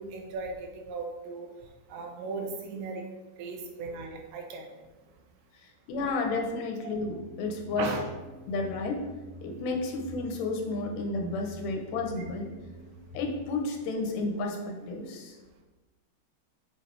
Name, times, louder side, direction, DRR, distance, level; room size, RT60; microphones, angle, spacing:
voice 1, 0.0-1.5 1.9-3.0 3.4-4.7 6.8-6.9 7.8-8.1 14.8-14.9, right 4 dB, 80° right, 1 dB, 3.5 m, -37 dB
voice 2, 5.9-7.9 8.5-9.1 9.4-12.5 13.1-15.4, left 3 dB, 75° left, 2 dB, 3.3 m, -32 dB
sound 1, 6.8-13.7, right 1 dB, 60° right, 4.3 m, -48 dB
8.3 x 7.0 x 4.7 m, 1.2 s
omnidirectional pair, 5.1 m